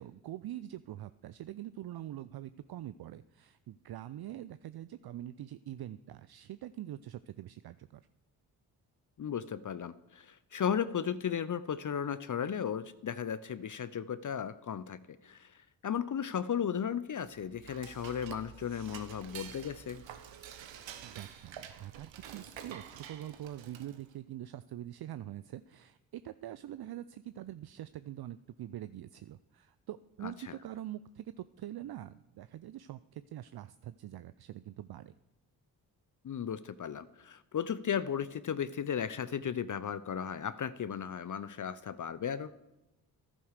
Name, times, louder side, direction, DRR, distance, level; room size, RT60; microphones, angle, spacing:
voice 1, 0.0-8.1 21.0-35.1, right 12 dB, 55° right, 14 dB, 0.6 m, -44 dB
voice 2, 9.2-15.0 15.2-15.5 15.8-20.0 30.2-30.5 36.2-42.5, left 8 dB, 40° left, 15 dB, 0.7 m, -35 dB
Dishes pots and pans / Cutlery silverware, 17.3-24.1, right 9 dB, 75° right, 1.2 m, -49 dB
11.0 x 9.7 x 6.6 m, 1.0 s
supercardioid pair, 45°, 46 cm